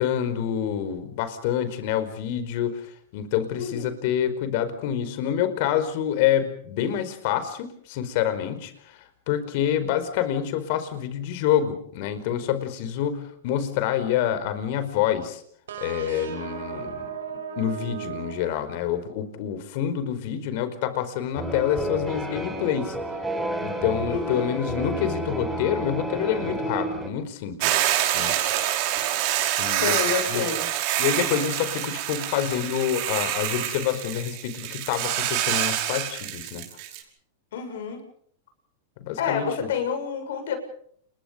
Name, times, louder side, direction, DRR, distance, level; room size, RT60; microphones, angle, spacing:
voice 1, 0.0-15.4 15.8-17.1 17.6-23.0 23.6-27.8 28.1-28.7 29.6-30.0 30.3-30.4 31.0-36.6 39.0-39.7, left 10 dB, 60° left, 11 dB, 4.9 m, -27 dB
voice 2, 3.6-3.9 24.1-24.5 29.7-30.7 37.5-38.0 39.2-40.6, left 7 dB, 75° left, 7 dB, 7.4 m, -28 dB
sound 1, 15.7-19.2, right 8 dB, 85° right, 5.3 m, -37 dB
sound 2, 21.4-27.1, right 1 dB, 5° right, 7.5 m, -30 dB
Hiss / Boiling, 27.6-37.0, right 12 dB, 55° right, 5.5 m, -26 dB
29.0 x 23.0 x 5.4 m, 0.63 s
hypercardioid pair, 125°, 0 cm